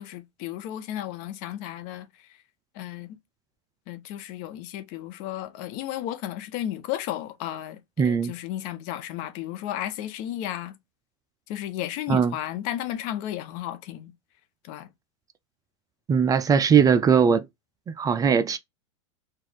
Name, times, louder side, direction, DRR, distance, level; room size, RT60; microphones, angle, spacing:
voice 1, 0.0-2.1 2.7-3.1 3.9-10.8 11.5-14.1 14.6-14.9, left 12 dB, 50° left, 0.9 m, -33 dB
voice 2, 8.0-8.3 12.1-12.3 16.1-17.5 17.9-18.6, right 6 dB, 20° right, 0.4 m, -20 dB
4.5 x 2.5 x 4.3 m
hypercardioid pair, 105°, 16 cm